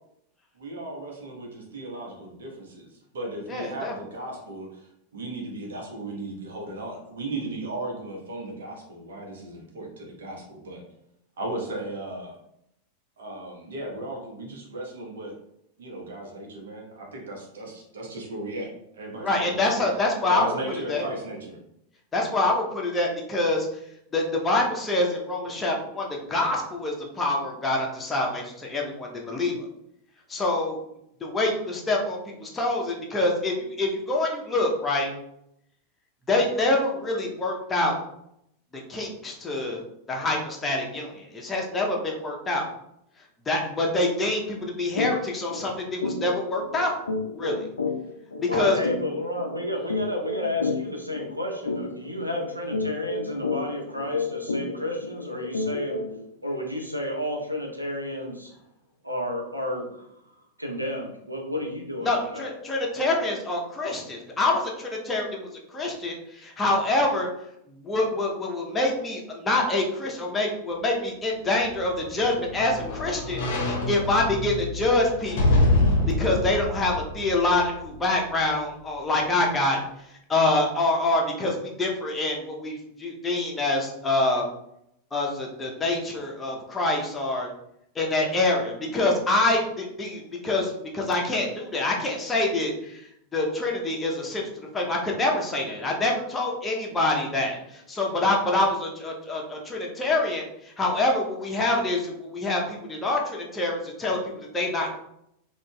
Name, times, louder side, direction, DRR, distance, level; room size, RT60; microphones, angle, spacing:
voice 1, 0.5-10.8 11.4-12.3 13.2-15.3 15.8-21.6, right 2 dB, 65° right, 0 dB, 0.9 m, -36 dB
voice 2, 3.5-3.9 19.2-20.5 20.9-21.0 22.1-23.7 24.1-29.7 30.3-30.8 31.2-35.1 36.3-38.0 38.9-39.8 40.1-42.7 43.5-47.0 47.3-47.6 48.4-48.8 62.0-67.3 67.7-75.7 76.1-79.8 80.1-84.4 85.1-87.5 88.0-93.0 93.3-94.4 94.7-104.9, left 2 dB, 15° left, -1 dB, 0.6 m, -26 dB
sound 1, 45.0-45.1 45.5-45.6 46.0-56.2, left 3 dB, 75° left, 0.3 m, -31 dB
voice 3, 48.5-56.0 56.4-58.5 59.0-60.1 60.6-62.5, left 1 dB, 85° right, 1 dB, 0.7 m, -31 dB
sound 2, 71.6-78.0 78.4-78.5, left 2 dB, 50° left, 0.7 m, -26 dB
3.8 x 2.4 x 2.2 m, 0.77 s
figure-of-eight pair, 90°, 0 cm